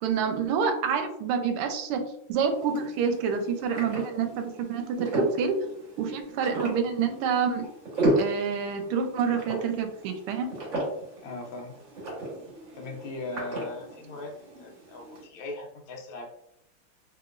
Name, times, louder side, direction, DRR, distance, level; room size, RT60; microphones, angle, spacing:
voice 1, 0.0-5.6 6.0-7.7 8.2-10.5, right 6 dB, 85° right, 6 dB, 1.5 m, -28 dB
sound 1, 2.3-15.2, right 1 dB, 40° right, 1.4 m, -34 dB
voice 2, 11.2-11.8 12.7-14.3 14.6-16.3, left 2 dB, 75° left, 1 dB, 1.4 m, -39 dB
3.3 x 2.9 x 2.5 m, 0.75 s
omnidirectional pair, 2.4 m